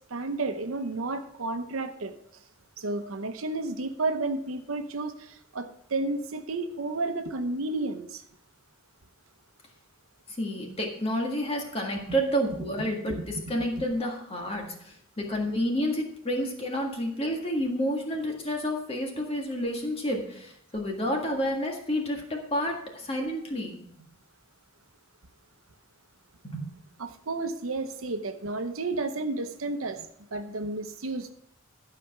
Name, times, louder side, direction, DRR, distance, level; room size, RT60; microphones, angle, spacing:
voice 1, 0.1-2.1 2.8-8.2 12.7-13.4 13.7-13.8 27.0-31.3, right 2 dB, 80° right, 0.9 m, -32 dB
voice 2, 10.4-13.2 13.5-23.8 26.4-26.7, equal, 30° left, 1.7 m, -30 dB
12.0 x 5.0 x 5.9 m
head